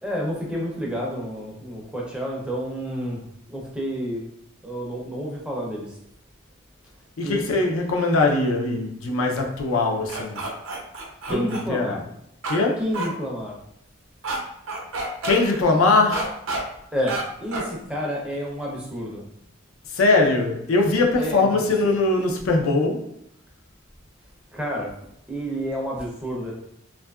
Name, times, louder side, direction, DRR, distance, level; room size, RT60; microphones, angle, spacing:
voice 1, 0.0-4.2 4.6-6.0 7.2-7.4 11.3-12.0 12.8-13.6 16.9-19.2 21.2-22.0 24.5-24.9 25.3-26.5, equal, 5° right, 0.4 m, -30 dB
voice 2, 7.2-10.4 11.3-12.0 12.5-12.8 15.2-16.3 19.9-23.1, left 3 dB, 90° left, 0.4 m, -21 dB
sound 1, 10.1-11.6 12.4-12.6 12.9-13.1 14.2-14.4 14.7-15.4 16.1-16.6 17.1-17.2 17.5-17.7, right 3 dB, 75° right, 0.5 m, -29 dB
2.7 x 2.3 x 2.3 m
head